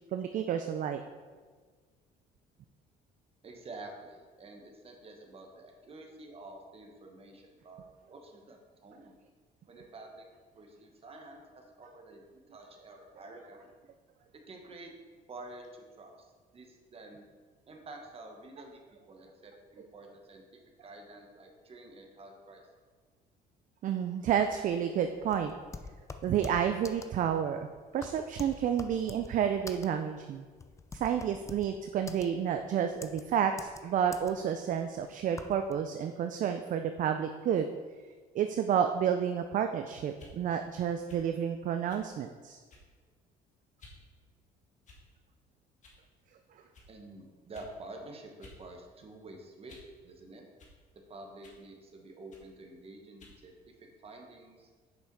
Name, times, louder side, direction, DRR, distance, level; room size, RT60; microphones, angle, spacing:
voice 1, 0.1-1.0 19.8-19.9 23.8-25.5 26.2-27.7 27.9-30.4 30.9-37.7 38.3-42.6, right 8 dB, 50° right, 7 dB, 0.4 m, -30 dB
voice 2, 3.4-7.8 8.1-9.1 9.7-10.2 10.6-13.7 14.3-14.9 15.3-16.3 16.5-17.2 17.7-22.6 46.9-49.8 50.0-50.4 51.1-54.7, right 2 dB, 35° right, 2 dB, 1.3 m, -49 dB
sound 1, 24.4-35.7, left 3 dB, 15° left, 0.5 m, -46 dB
sound 2, 40.1-40.4 41.1-41.3 41.9-42.1 42.7-43.0 43.8-44.0 44.8-45.2 45.8-46.0 46.7-46.9 47.5-47.7 48.4-48.6 49.0-50.0 50.6-50.8 51.4-51.6 52.3-52.5 53.2-53.4, left 2 dB, 45° left, 1.6 m, -55 dB
6.4 x 5.5 x 4.7 m, 1.5 s
cardioid pair, 110°, 17 cm